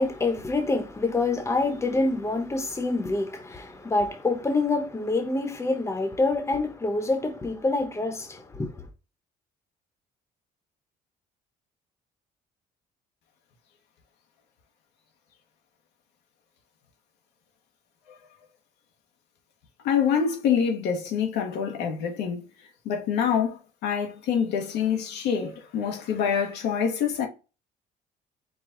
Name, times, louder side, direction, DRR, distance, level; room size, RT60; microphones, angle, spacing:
voice 1, 0.0-8.9, left 3 dB, 15° left, 1.0 m, -26 dB
voice 2, 19.8-22.4 22.8-27.3, left 7 dB, 85° left, 1.1 m, -26 dB
4.8 x 2.3 x 3.8 m
cardioid pair, 110°, 17 cm